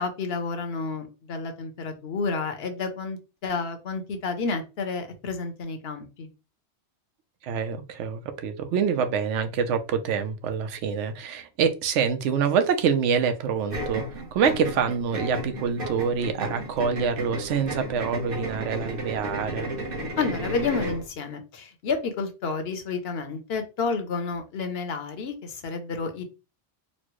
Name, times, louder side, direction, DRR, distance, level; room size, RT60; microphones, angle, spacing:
voice 1, 0.0-6.3 20.2-26.2, left 4 dB, 65° left, 7 dB, 0.9 m, -30 dB
voice 2, 7.4-19.7, right 6 dB, 90° right, 8 dB, 0.9 m, -26 dB
sound 1, 13.7-21.1, right 1 dB, 50° right, 1.2 m, -33 dB
4.2 x 2.0 x 2.9 m, 0.29 s
omnidirectional pair, 1.2 m